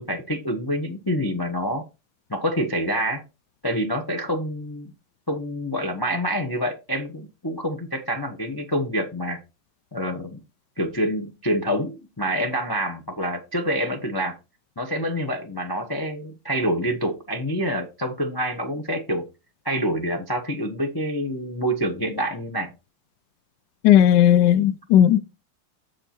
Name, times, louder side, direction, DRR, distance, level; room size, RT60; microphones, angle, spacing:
voice 1, 0.0-1.8 2.3-3.2 3.6-4.9 5.3-9.4 9.9-10.4 10.8-14.4 14.8-19.3 19.6-22.7, equal, 30° left, 0.4 m, -27 dB
voice 2, 23.8-25.2, left 11 dB, 75° left, 1.0 m, -15 dB
7.2 x 5.5 x 4.3 m
omnidirectional pair, 2.3 m